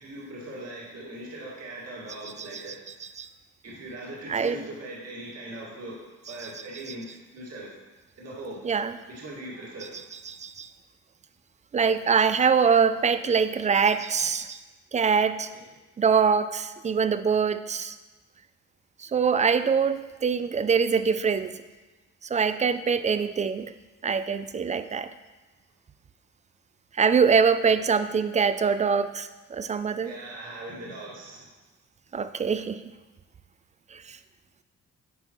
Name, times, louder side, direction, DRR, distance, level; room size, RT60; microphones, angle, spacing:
voice 1, 0.0-2.7 3.6-6.0 6.3-7.7 8.2-8.6 9.1-9.9 15.5-15.6 23.0-23.1 30.0-31.5, right 1 dB, 55° right, -5 dB, 2.2 m, -40 dB
voice 2, 4.3-4.7 6.3-6.5 6.9-7.0 8.6-9.0 10.1-10.7 11.7-14.6 14.9-15.5 16.0-17.9 19.1-21.6 22.3-23.7 24.0-25.1 27.0-30.1 32.1-32.8, right 6 dB, 25° right, 12 dB, 0.3 m, -24 dB
9.3 x 5.6 x 3.1 m, 1.2 s
cardioid pair, 90°, 30 cm